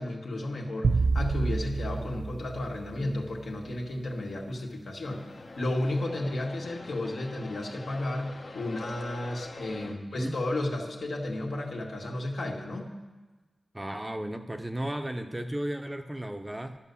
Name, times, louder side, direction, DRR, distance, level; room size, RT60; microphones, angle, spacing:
voice 1, 0.0-5.2 5.6-12.9, left 1 dB, 70° left, 0 dB, 2.0 m, -33 dB
sound 1, 0.8-3.3, right 4 dB, 70° right, 0.4 m, -28 dB
sound 2, 5.1-9.9, left 2 dB, 50° left, 1.1 m, -44 dB
voice 2, 9.7-10.4 13.7-16.8, right 1 dB, 10° right, 6 dB, 0.7 m, -35 dB
12.0 x 8.4 x 7.0 m, 1.2 s
wide cardioid pair, 135°, 0 cm